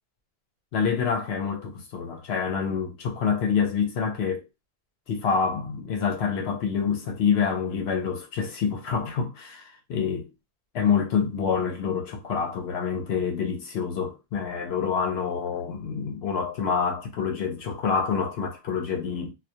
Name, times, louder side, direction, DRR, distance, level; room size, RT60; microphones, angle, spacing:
voice 1, 0.7-4.5 5.1-10.3 10.7-19.3, left 6 dB, 75° left, 0.8 m, -27 dB
2.2 x 2.1 x 2.7 m
omnidirectional pair, 1.1 m